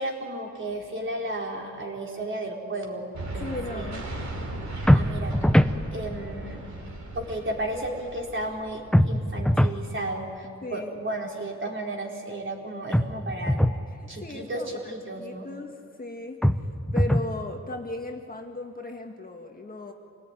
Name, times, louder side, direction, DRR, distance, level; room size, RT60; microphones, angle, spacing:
voice 1, 0.0-3.9 4.9-6.6 7.1-13.6 14.1-15.5, right 1 dB, 40° right, 0 dB, 4.5 m, -34 dB
sound 1, 3.1-10.1, right 1 dB, 65° right, 4.3 m, -37 dB
voice 2, 3.4-4.0 10.6-11.0 13.9-14.9 15.2-16.4 16.9-19.9, left 2 dB, 30° left, 3 dB, 1.9 m, -37 dB
sound 2, 4.9-5.8 8.9-9.8 12.9-13.8 16.4-17.3, equal, 5° left, 0.8 m, -21 dB
26.5 x 18.5 x 9.9 m, 2.5 s
wide cardioid pair, 105°, 30 cm